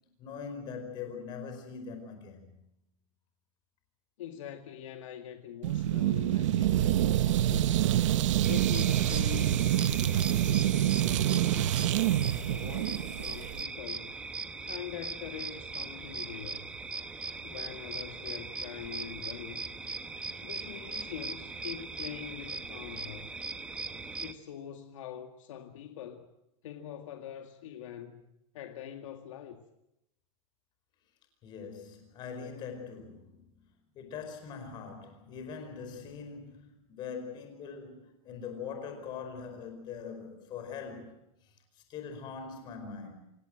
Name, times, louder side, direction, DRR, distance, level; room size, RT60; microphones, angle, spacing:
voice 1, 0.2-2.5 31.4-33.6 33.9-43.1, left 6 dB, 25° left, 4.9 m, -42 dB
voice 2, 4.2-7.9 8.4-11.8 12.4-14.1 14.7-16.7 17.4-19.7 20.4-23.3 24.2-26.3 26.6-28.2 28.5-29.6, left 10 dB, 65° left, 2.1 m, -44 dB
sound 1, 5.6-13.6, right 12 dB, 60° right, 1.0 m, -27 dB
sound 2, 8.4-24.3, right 3 dB, 5° right, 0.8 m, -40 dB
27.5 x 17.5 x 7.7 m
supercardioid pair, 165°, 18 cm